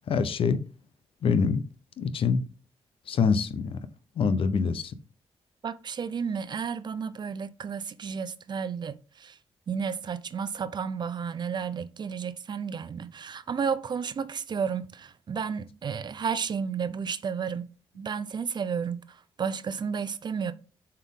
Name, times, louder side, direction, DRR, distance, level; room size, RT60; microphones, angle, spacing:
voice 1, 0.1-0.6 1.2-1.6 2.0-2.4 3.1-3.8 4.2-4.9, left 5 dB, 65° left, 0.7 m, -25 dB
voice 2, 5.6-9.4 9.7-17.7 18.0-20.5, right 6 dB, 50° right, 0.5 m, -32 dB
7.2 x 4.4 x 3.6 m
cardioid pair, 90°, 10 cm